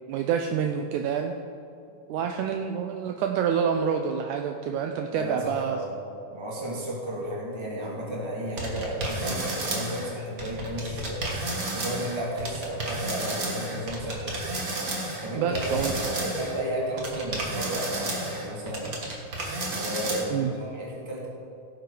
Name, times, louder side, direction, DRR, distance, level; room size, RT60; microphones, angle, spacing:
voice 1, 0.1-1.3 2.1-5.8 15.3-16.0 20.3-20.5, right 7 dB, 90° right, 4 dB, 1.7 m, -27 dB
voice 2, 5.1-6.0 6.3-11.2 11.7-14.5 15.2-19.0 19.7-21.3, right 1 dB, 10° right, -4 dB, 1.3 m, -33 dB
sound 1, 8.6-10.1 10.4-16.6 17.0-20.2, right 2 dB, 45° right, 1.1 m, -32 dB
17.0 x 6.5 x 4.8 m, 2.6 s
omnidirectional pair, 4.1 m